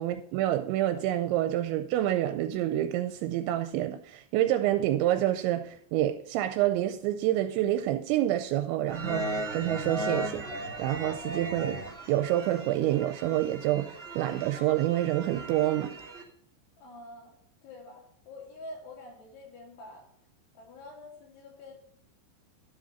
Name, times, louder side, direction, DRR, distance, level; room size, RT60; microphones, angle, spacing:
voice 1, 0.0-15.9, right 13 dB, 85° right, 2.8 m, -28 dB
sound 1, 8.9-16.2, right 2 dB, ahead, 0.9 m, -37 dB
voice 2, 16.8-17.3 17.6-20.1 20.6-21.7, left 2 dB, 85° left, 5.1 m, -46 dB
12.0 x 5.1 x 5.1 m
omnidirectional pair, 5.3 m